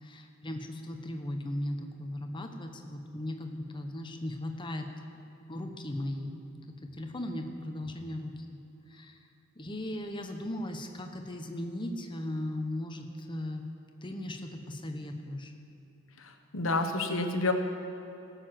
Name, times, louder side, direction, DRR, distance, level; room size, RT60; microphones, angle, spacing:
voice 1, 0.0-5.2 5.5-6.4 6.9-8.4 8.9-9.2 9.6-13.6 14.0-15.5, left 1 dB, 20° left, 4 dB, 1.0 m, -37 dB
voice 2, 16.2-17.5, left 3 dB, 65° left, 6 dB, 1.2 m, -29 dB
17.5 x 6.9 x 7.6 m, 2.9 s
head